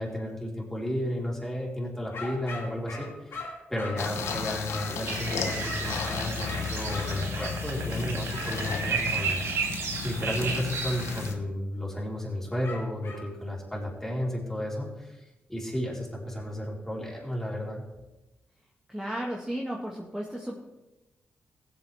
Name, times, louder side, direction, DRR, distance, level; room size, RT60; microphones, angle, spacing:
voice 1, 0.0-9.4 10.0-17.8, equal, 10° left, -4 dB, 4.5 m, -33 dB
sound 1, 2.1-5.0 5.6-7.6 8.3-8.5 12.6-13.3, left 3 dB, 65° left, 3.1 m, -40 dB
sound 2, 4.0-11.3, left 6 dB, 80° left, 1.0 m, -34 dB
sound 3, 5.1-11.3, right 5 dB, 80° right, 1.9 m, -33 dB
voice 2, 18.9-20.6, equal, 10° right, -2 dB, 1.9 m, -34 dB
16.5 x 7.9 x 3.7 m, 1.0 s
cardioid pair, 60°, 4 cm